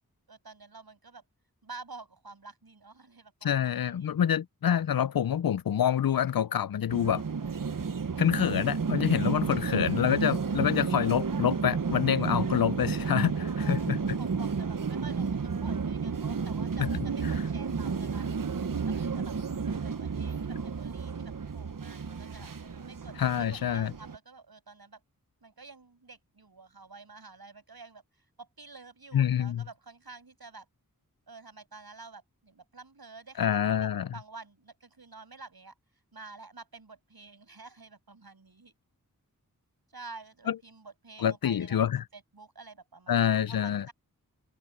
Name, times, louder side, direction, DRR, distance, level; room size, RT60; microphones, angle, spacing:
voice 1, 0.3-1.2 1.6-4.1 13.6-13.9 14.2-18.3 18.9-19.4 19.6-22.5 22.8-25.0 25.4-30.7 31.3-38.7 39.9-41.8 42.1-43.9, right 3 dB, 80° right, 7.7 m, -49 dB
voice 2, 3.4-7.2 8.2-14.2 16.8-16.9 23.2-23.9 29.1-29.6 33.4-34.1 40.5-40.6 41.2-42.0 43.1-43.9, left 9 dB, 70° left, 0.5 m, -27 dB
sound 1, 6.9-24.2, right 5 dB, 60° right, 1.0 m, -32 dB
wide cardioid pair, 50°, 36 cm